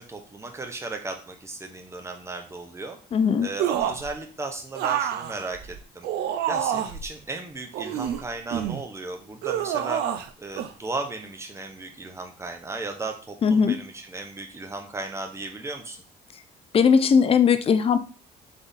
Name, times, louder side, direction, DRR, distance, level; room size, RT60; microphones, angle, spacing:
voice 1, 0.0-3.0 3.4-6.1 6.5-16.0, right 3 dB, 15° right, 4 dB, 0.8 m, -35 dB
voice 2, 3.1-3.5 13.4-13.8 16.7-18.0, left 6 dB, 35° left, 10 dB, 0.5 m, -19 dB
sound 1, 3.6-4.1 4.7-7.1 7.7-8.8 9.4-10.3 10.6-10.7, right 10 dB, 75° right, 0.5 m, -27 dB
3.6 x 3.5 x 4.0 m, 0.38 s
cardioid pair, 110°, 17 cm